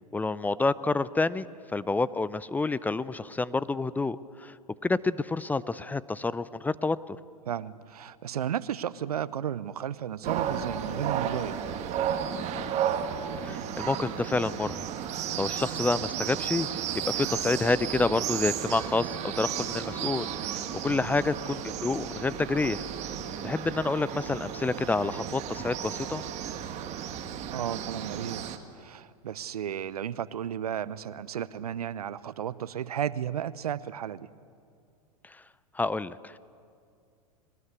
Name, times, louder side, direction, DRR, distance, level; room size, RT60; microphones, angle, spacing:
voice 1, 0.1-4.6 4.8-7.2 13.4-16.7 16.9-22.8 23.4-26.2 35.2-35.4 35.7-36.4, left 3 dB, 10° left, 17 dB, 0.5 m, -29 dB
voice 2, 7.5-11.7 20.8-21.1 27.5-28.4 28.7-34.3, right 9 dB, 80° right, 18 dB, 0.8 m, -33 dB
sound 1, 10.2-28.6, right 9 dB, 35° right, 1.7 m, -33 dB
22.0 x 19.5 x 8.3 m, 2.3 s
hypercardioid pair, 105°, 19 cm